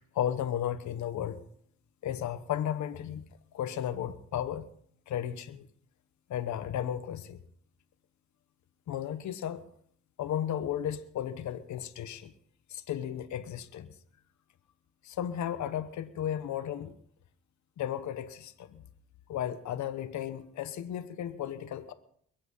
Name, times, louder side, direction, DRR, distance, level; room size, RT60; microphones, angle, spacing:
voice 1, 0.1-1.4 2.0-3.2 3.5-4.6 5.1-5.6 6.3-7.4 8.9-9.6 10.2-12.3 12.7-13.9 15.0-16.9 17.8-18.8 19.3-21.9, left 10 dB, 70° left, 1.2 m, -34 dB
22.0 x 8.9 x 5.6 m
cardioid pair, 90°, 30 cm